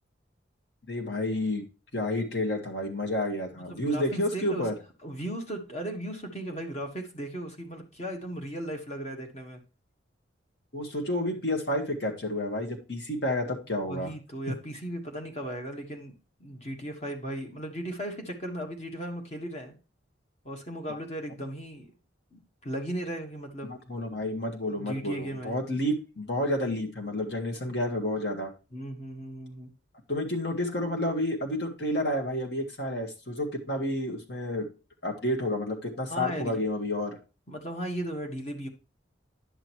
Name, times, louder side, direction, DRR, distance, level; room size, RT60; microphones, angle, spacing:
voice 1, 0.9-1.6 1.9-4.7 10.7-14.1 23.6-28.5 30.1-34.7 35.0-37.2, left 1 dB, 60° left, 3 dB, 1.8 m, -30 dB
voice 2, 3.6-4.7 5.0-9.6 13.9-16.1 16.4-19.8 20.4-21.9 22.3-24.2 24.8-25.6 28.7-29.7 36.1-36.6 37.5-38.7, right 1 dB, 35° left, 3 dB, 1.6 m, -36 dB
10.5 x 6.4 x 3.1 m, 0.32 s
head